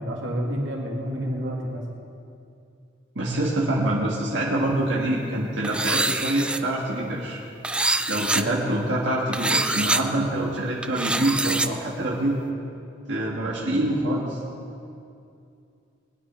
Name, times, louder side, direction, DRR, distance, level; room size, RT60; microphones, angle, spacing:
voice 1, 0.0-1.8, equal, 90° right, -1 dB, 2.3 m, -29 dB
voice 2, 3.1-7.4 8.1-12.4 13.1-14.4, right 1 dB, 65° right, -5 dB, 1.7 m, -25 dB
sound 1, 5.6-6.6 7.6-8.4 9.3-10.0 10.8-11.7, right 2 dB, 5° right, 0.3 m, -24 dB
20.5 x 9.9 x 4.4 m, 2.5 s
head